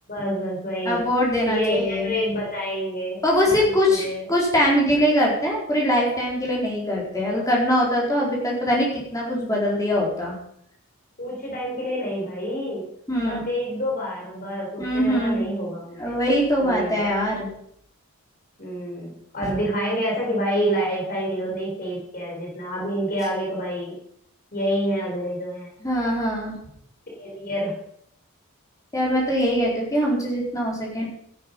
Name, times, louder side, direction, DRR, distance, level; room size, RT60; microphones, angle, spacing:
voice 1, 0.1-1.1 1.5-3.2 3.9-4.3 8.3-8.4 11.2-12.9 13.2-16.2 16.6-17.1 18.6-24.0 24.5-25.7 27.2-27.8, equal, 40° left, -2 dB, 4.2 m, -28 dB
voice 2, 0.9-2.2 3.2-10.4 13.1-13.4 14.8-15.5 16.0-17.5 25.8-26.6 28.9-31.1, equal, 15° left, -3 dB, 4.2 m, -22 dB
13.0 x 11.0 x 5.4 m, 0.69 s
head